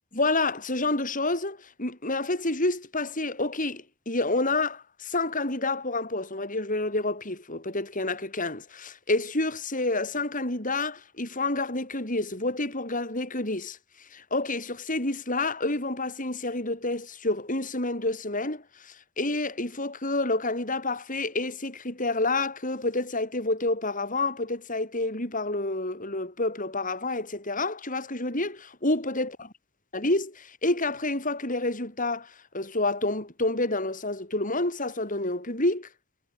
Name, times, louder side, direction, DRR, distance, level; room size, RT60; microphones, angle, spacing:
voice 1, 0.1-13.8 14.1-29.3 29.9-35.9, left 2 dB, 40° left, 7.5 m, -29 dB
head